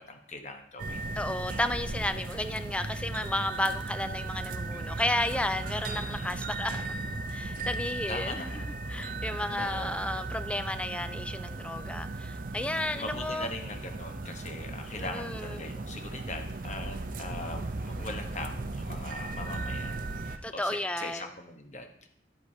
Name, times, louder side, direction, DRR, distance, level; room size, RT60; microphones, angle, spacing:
voice 1, 0.0-1.0 2.1-2.4 6.2-6.3 8.1-8.7 9.6-10.0 12.9-20.0 20.2-21.9, left 2 dB, 40° left, 5 dB, 0.9 m, -41 dB
sound 1, 0.8-20.4, right 2 dB, 45° right, 0.5 m, -36 dB
voice 2, 1.2-6.8 7.3-8.6 8.9-13.5 15.0-15.6 20.4-21.3, left 1 dB, 5° left, 10 dB, 0.3 m, -33 dB
9.8 x 8.2 x 2.7 m, 0.69 s
head